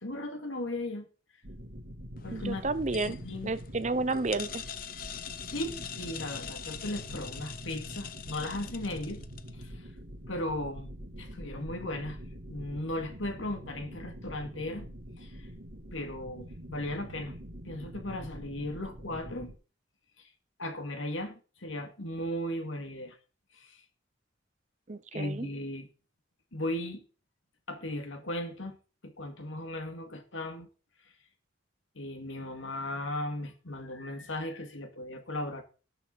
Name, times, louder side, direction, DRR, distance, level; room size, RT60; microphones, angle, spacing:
voice 1, 0.0-1.0 2.2-2.6 3.1-3.5 5.5-9.2 9.6-9.9 10.3-10.9 11.2-12.2 12.5-14.8 15.2-15.5 15.9-17.4 17.6-19.5 20.6-23.2 23.5-23.8 25.1-25.9 26.5-27.0 27.7-28.8 29.0-30.7 32.0-35.6, left 1 dB, 80° left, 2.3 m, -36 dB
sound 1, 1.4-19.5, equal, 65° right, 2.7 m, -45 dB
sound 2, 2.2-9.6, left 9 dB, 45° left, 0.7 m, -43 dB
voice 2, 2.3-3.2 3.4-4.6 24.9-25.5, right 3 dB, 35° right, 0.7 m, -31 dB
18.5 x 6.6 x 4.1 m
head